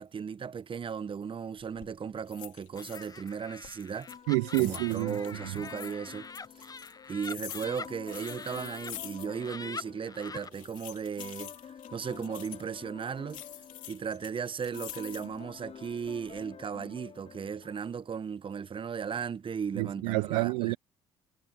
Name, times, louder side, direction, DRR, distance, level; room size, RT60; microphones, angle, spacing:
voice 1, 0.0-4.1 4.6-6.3 6.6-6.8 7.1-11.5 11.9-13.4 13.9-20.8, right 6 dB, 35° right, 1.1 m, -36 dB
sound 1, 1.6-1.9 2.3-3.3 3.6-5.9 6.3-9.5 9.8-9.9 10.4-12.7 13.3-15.4 15.9-16.4, left 13 dB, 60° left, 3.3 m, -46 dB
Laughter, 2.8-8.9 9.3-10.5, left 4 dB, 25° left, 1.0 m, -44 dB
sound 2, 4.1-18.3, left 7 dB, 45° left, 5.8 m, -50 dB
voice 2, 4.3-5.2 19.8-20.8, right 32 dB, 75° right, 0.4 m, -28 dB
hypercardioid pair, 55°, 15 cm